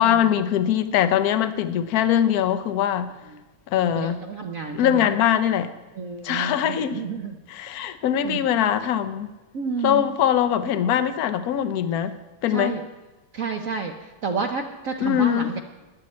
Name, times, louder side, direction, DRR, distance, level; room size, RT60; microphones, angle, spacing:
voice 1, 0.0-3.1 3.7-4.2 4.7-5.7 6.2-7.0 7.5-9.3 9.8-12.1 12.4-12.8 15.0-15.5, left 10 dB, 65° left, 0.9 m, -22 dB
voice 2, 3.9-5.1 6.0-7.3 8.2-8.4 9.5-10.0 12.5-12.8 13.3-15.6, right 5 dB, 60° right, 0.9 m, -30 dB
17.0 x 11.0 x 4.3 m
omnidirectional pair, 2.3 m